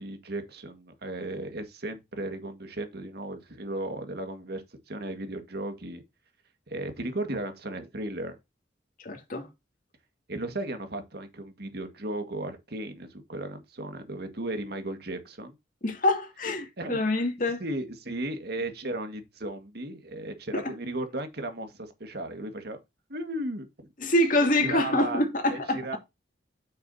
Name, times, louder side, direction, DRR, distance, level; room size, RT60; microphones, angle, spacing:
voice 1, 0.0-6.0 6.7-8.4 10.3-15.6 16.8-17.1 17.6-22.8 23.1-23.9 24.6-25.2 25.5-26.0, right 1 dB, 60° right, 1.8 m, -35 dB
voice 2, 9.0-9.5 15.8-17.6 20.5-20.7 24.0-26.0, left 1 dB, 50° left, 2.6 m, -26 dB
9.3 x 6.6 x 2.8 m
head